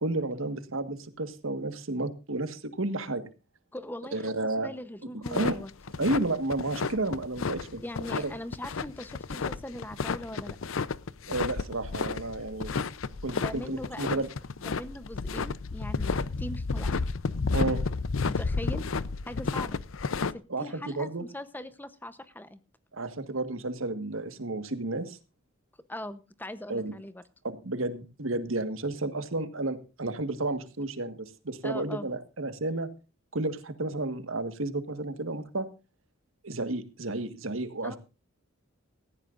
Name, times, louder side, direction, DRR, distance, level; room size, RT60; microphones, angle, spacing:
voice 1, 0.0-3.2 4.1-4.7 5.1-5.6 6.0-7.8 8.2-8.3 11.3-12.7 13.2-14.3 17.5-17.8 20.5-21.2 22.9-25.2 26.7-26.9 27.6-32.9 33.3-35.7 36.4-38.0, right 2 dB, 80° right, 10 dB, 1.6 m, -32 dB
voice 2, 3.7-4.3 4.6-5.7 7.8-10.6 13.3-14.2 14.6-17.0 18.2-18.8 19.2-19.8 20.3-22.6 25.9-27.2 31.6-32.1 37.8-38.0, left 1 dB, 10° left, 12 dB, 0.8 m, -40 dB
sound 1, 5.3-20.3, left 4 dB, 75° left, 0.6 m, -31 dB
17.5 x 15.0 x 2.5 m, 0.31 s
head